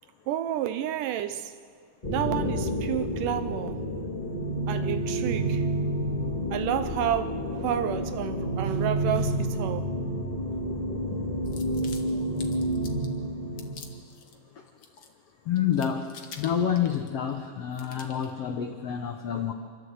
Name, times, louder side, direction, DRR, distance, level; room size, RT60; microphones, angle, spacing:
voice 1, 0.3-1.5 2.1-3.8 4.7-5.7 6.5-9.9, right 11 dB, 75° right, 2.1 m, -30 dB
sound 1, 2.0-14.0, right 1 dB, 10° left, 2.1 m, -29 dB
sound 2, 11.4-13.2 13.6-14.4 14.7-15.3 15.6-17.4 17.7-18.3, left 6 dB, 55° left, 1.4 m, -47 dB
voice 2, 15.5-19.5, left 8 dB, 80° left, 1.3 m, -28 dB
27.0 x 12.5 x 8.1 m
omnidirectional pair, 4.2 m